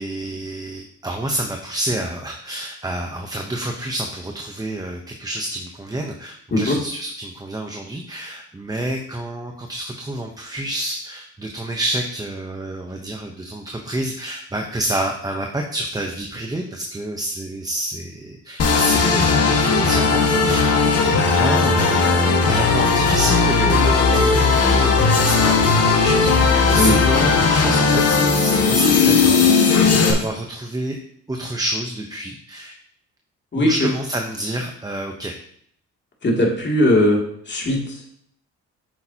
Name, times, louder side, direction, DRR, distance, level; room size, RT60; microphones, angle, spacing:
voice 1, 0.0-31.0 31.3-32.7 33.5-35.3, right 1 dB, 15° right, 3 dB, 0.9 m, -28 dB
sound 1, 18.6-30.1, left 4 dB, 55° left, 1.6 m, -17 dB
voice 2, 36.2-37.2 37.5-38.1, left 1 dB, 35° left, -1 dB, 2.6 m, -18 dB
8.8 x 6.6 x 2.9 m, 0.64 s
cardioid pair, 90°, 30 cm